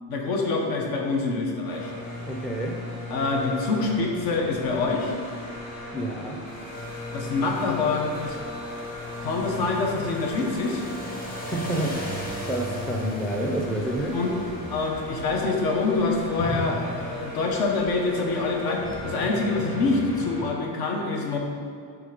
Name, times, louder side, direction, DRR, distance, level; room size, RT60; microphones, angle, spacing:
voice 1, 0.1-1.9 3.1-5.1 7.1-8.4 9.2-10.8 14.1-14.4 14.7-21.4, left 3 dB, 65° left, 1 dB, 1.1 m, -26 dB
sound 1, 1.6-20.4, left 1 dB, 45° left, 1.7 m, -37 dB
voice 2, 2.2-2.8 5.9-6.4 11.5-12.0 12.5-14.2, right 1 dB, ahead, 0 dB, 0.4 m, -28 dB
sound 2, 6.5-19.0, equal, 25° left, 1.1 m, -40 dB
7.3 x 3.6 x 5.1 m, 2.2 s
cardioid pair, 160°, 39 cm